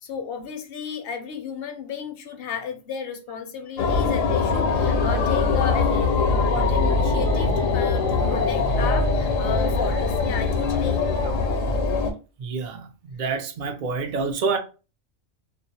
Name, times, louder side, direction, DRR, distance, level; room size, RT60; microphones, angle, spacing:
voice 1, 0.0-11.3, left 6 dB, 65° left, 0.6 m, -33 dB
sound 1, 3.8-12.1, left 4 dB, 85° left, 1.0 m, -22 dB
voice 2, 12.4-14.6, right 4 dB, 65° right, 0.4 m, -27 dB
2.4 x 2.0 x 2.7 m
omnidirectional pair, 1.3 m